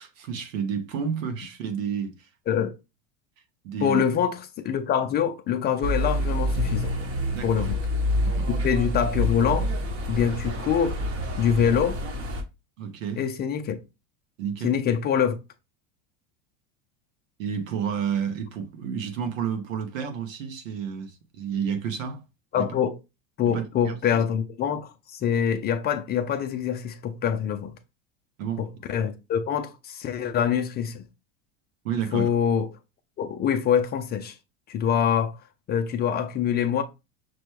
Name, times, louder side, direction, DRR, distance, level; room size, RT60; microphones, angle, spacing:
voice 1, 0.0-2.3 2.6-2.7 3.6-4.0 7.3-7.7 8.2-8.5 12.8-13.2 14.4-14.8 17.4-22.2 22.5-22.7 23.5-23.9 28.4-28.6 31.8-32.3, right 7 dB, 90° right, 1.0 m, -30 dB
voice 2, 3.8-6.9 7.4-7.8 8.5-9.7 10.1-11.0 11.4-12.0 13.2-13.8 14.6-15.4 22.5-23.0 23.4-27.7 28.9-31.0 32.1-32.7 33.2-34.4 34.7-35.3 35.7-36.8, left 8 dB, 25° left, 0.4 m, -25 dB
sound 1, 5.8-12.4, left 1 dB, 35° right, 1.0 m, -27 dB
6.0 x 2.1 x 3.1 m
supercardioid pair, 130°, 38 cm